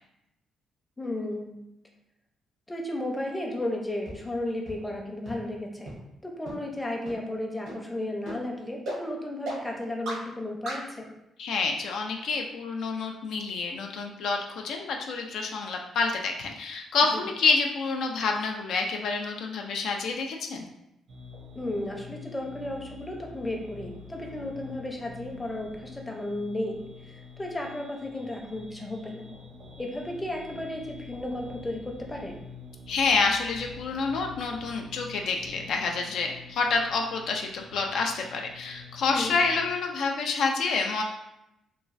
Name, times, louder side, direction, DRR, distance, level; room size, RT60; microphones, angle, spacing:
voice 1, 1.0-1.6 2.7-5.9 6.2-11.1 17.1-17.2 21.6-29.3 29.8-32.3 39.1-39.4, left 1 dB, 10° left, 0 dB, 0.5 m, -34 dB
sound 1, 4.1-4.2 4.7-4.8 5.3-5.4 5.9-6.0 6.5-6.6 7.1-7.2 7.7-7.8 8.3-8.4 8.9-9.0 9.5-9.6 10.1-10.2 10.7-10.8, right 2 dB, 90° right, 1.0 m, -35 dB
voice 2, 11.4-20.7 32.9-41.0, left 4 dB, 75° left, 2 dB, 0.3 m, -28 dB
sound 2, 21.1-39.7, left 3 dB, 65° right, 0.6 m, -47 dB
3.0 x 2.2 x 2.5 m, 0.87 s
cardioid pair, 90°, 0 cm